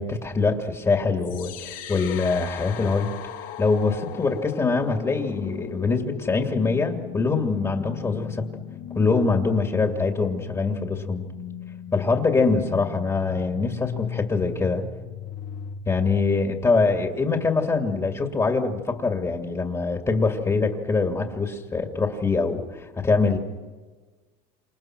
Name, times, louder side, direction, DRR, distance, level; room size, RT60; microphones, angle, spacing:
voice 1, 0.0-3.1 3.6-8.5 8.9-11.3 11.9-14.8 15.9-23.4, left 4 dB, 20° left, 3 dB, 2.5 m, -24 dB
sound 1, 1.2-17.2, left 9 dB, 65° left, 1.7 m, -37 dB
28.5 x 27.5 x 6.1 m, 1.4 s
cardioid pair, 115°, 15 cm